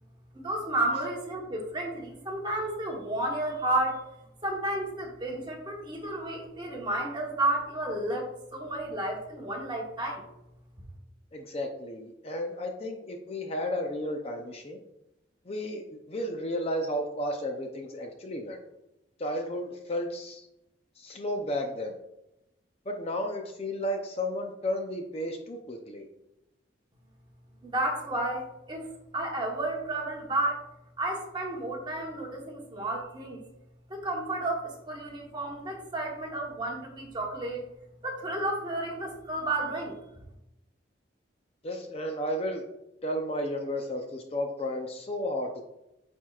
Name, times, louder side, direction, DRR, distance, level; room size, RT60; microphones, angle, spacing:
voice 1, 0.3-4.0 4.4-10.3 27.6-30.6 31.0-33.4 33.9-37.6 38.0-40.0, right 1 dB, 25° right, 0 dB, 1.1 m, -32 dB
voice 2, 11.3-14.8 15.5-15.8 16.1-18.6 19.2-20.5 21.0-21.9 22.9-26.1 41.6-42.6 43.0-45.6, left 1 dB, 30° left, 4 dB, 0.5 m, -33 dB
8.9 x 4.4 x 2.4 m, 0.88 s
head